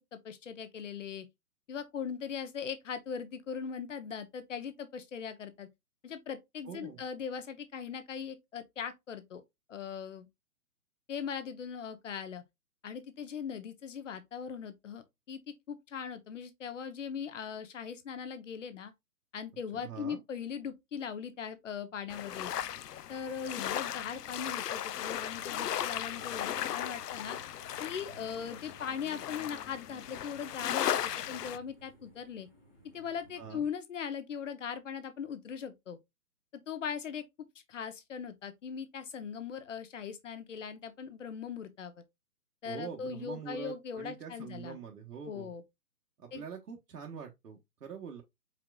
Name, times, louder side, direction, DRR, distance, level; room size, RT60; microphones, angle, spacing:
voice 1, 0.1-1.3 1.7-5.7 6.0-9.4 9.7-10.3 11.1-12.4 12.8-15.4 15.7-18.9 19.3-22.5 23.1-27.4 27.8-32.5 32.9-36.0 36.7-37.2 37.7-42.0 42.6-44.8 45.2-45.6 46.3-46.4, left 7 dB, 55° left, 0.9 m, -40 dB
voice 2, 6.6-7.0 19.7-20.2 33.4-33.6 42.6-45.5 46.2-48.2, right 7 dB, 85° right, 1.3 m, -44 dB
sound 1, 22.1-31.6, left 11 dB, 85° left, 0.6 m, -36 dB
sound 2, 23.5-33.7, right 2 dB, 10° left, 0.6 m, -59 dB
4.6 x 3.7 x 2.3 m
hypercardioid pair, 160°, 46 cm